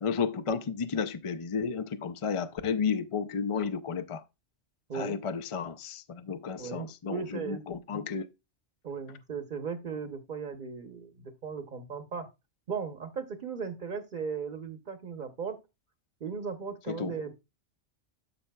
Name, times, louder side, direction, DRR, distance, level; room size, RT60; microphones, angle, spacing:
voice 1, 0.0-4.2 4.9-8.3 16.9-17.1, left 6 dB, 45° left, 0.4 m, -32 dB
voice 2, 6.6-7.6 8.8-12.3 12.7-15.6 16.2-17.3, right 6 dB, 45° right, 1.0 m, -37 dB
12.0 x 5.6 x 2.3 m
omnidirectional pair, 1.2 m